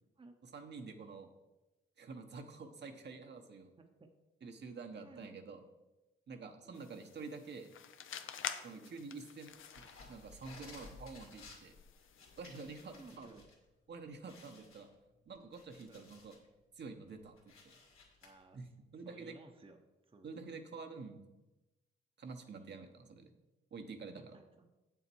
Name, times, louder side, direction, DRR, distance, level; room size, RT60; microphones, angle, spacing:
voice 1, 0.5-1.3 2.0-3.7 4.4-5.6 6.3-7.7 8.6-11.7 12.4-13.3 13.9-14.9 15.3-16.3 16.8-17.3 17.6-17.7 18.5-18.7 18.9-19.3 20.2-21.3 22.2-23.3 23.7-24.2, right 4 dB, 55° right, 5 dB, 1.1 m, -48 dB
voice 2, 3.8-4.1 4.9-5.3 6.6-6.9 8.7-8.9 12.9-13.5 15.9-16.1 18.2-18.7 19.0-20.5 22.5-22.8 24.1-24.7, right 3 dB, 25° right, 5 dB, 0.9 m, -58 dB
sound 1, 6.7-13.2, left 8 dB, 70° left, 0.7 m, -49 dB
sound 2, 9.6-13.5 13.9-14.0 14.3-16.5 16.9-18.3, left 3 dB, 90° left, 2.4 m, -57 dB
8.1 x 7.2 x 4.6 m, 1.0 s
cardioid pair, 85°, 21 cm